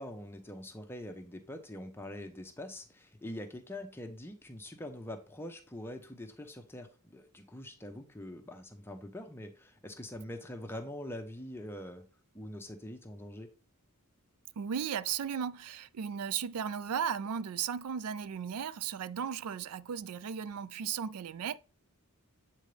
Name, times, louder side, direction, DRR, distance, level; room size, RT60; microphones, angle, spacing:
voice 1, 0.0-12.0 12.3-13.5, left 1 dB, 10° left, 0.9 m, -44 dB
voice 2, 14.6-21.6, right 7 dB, 85° right, 0.4 m, -36 dB
8.1 x 3.9 x 3.3 m
head